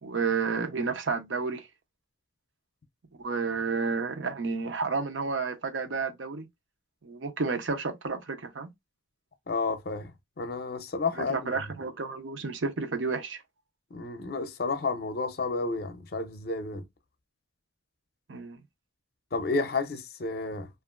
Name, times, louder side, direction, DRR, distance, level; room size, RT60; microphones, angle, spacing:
voice 1, 0.0-1.7 3.2-6.5 7.0-8.7 11.1-13.4 18.3-18.6, right 4 dB, 80° right, 0.6 m, -31 dB
voice 2, 9.5-10.1 10.4-11.5 13.9-16.9 19.3-20.7, left 3 dB, 50° left, 0.5 m, -31 dB
2.9 x 2.4 x 2.3 m
head